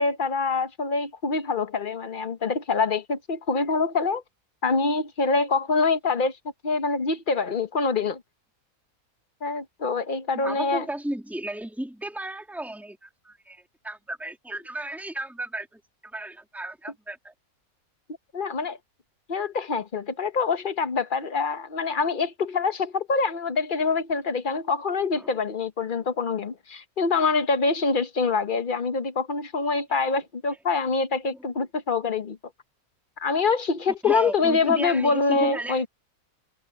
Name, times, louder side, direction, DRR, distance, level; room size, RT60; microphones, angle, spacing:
voice 1, 0.0-4.2 4.6-6.4 6.6-8.2 9.4-10.8 18.3-18.8 19.3-32.4 33.2-35.9, left 4 dB, 40° left, 1.1 m, -25 dB
voice 2, 10.3-17.3 25.1-25.4 31.3-31.7 34.0-35.8, right 1 dB, ahead, 3.3 m, -34 dB
omnidirectional pair, 1.6 m